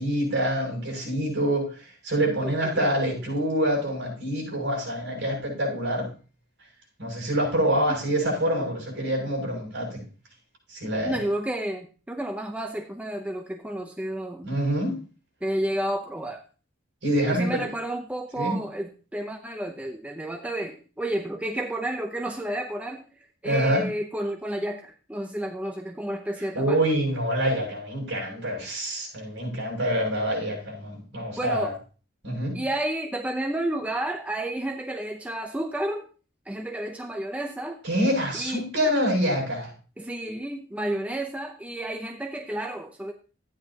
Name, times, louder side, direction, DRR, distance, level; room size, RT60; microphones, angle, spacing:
voice 1, 0.0-6.1 7.0-10.0 10.7-11.2 14.4-15.0 17.0-17.7 18.4-18.6 23.4-23.8 26.5-31.7 32.2-32.6 37.8-39.7, equal, 60° right, -2 dB, 7.1 m, -26 dB
voice 2, 2.4-2.9 7.9-8.0 11.0-14.5 15.4-16.4 17.3-23.0 23.4-26.8 31.4-31.8 32.5-36.0 36.5-37.8 38.3-38.6 40.0-43.1, right 1 dB, 5° right, 4 dB, 0.7 m, -31 dB
13.5 x 9.7 x 2.9 m, 0.37 s
head